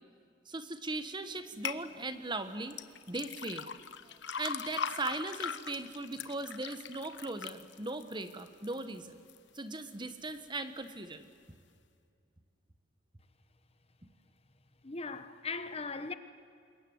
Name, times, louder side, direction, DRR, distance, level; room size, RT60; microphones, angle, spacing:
voice 1, 0.4-2.8 3.1-3.7 4.0-9.2 9.5-11.3, right 2 dB, 25° right, 1.3 m, -39 dB
sound 1, 1.6-1.8 2.7-8.8 9.3-9.8 10.3-10.4, left 6 dB, 60° left, 1.1 m, -40 dB
voice 2, 14.8-16.1, left 4 dB, 30° left, 1.0 m, -39 dB
26.5 x 22.0 x 9.5 m
head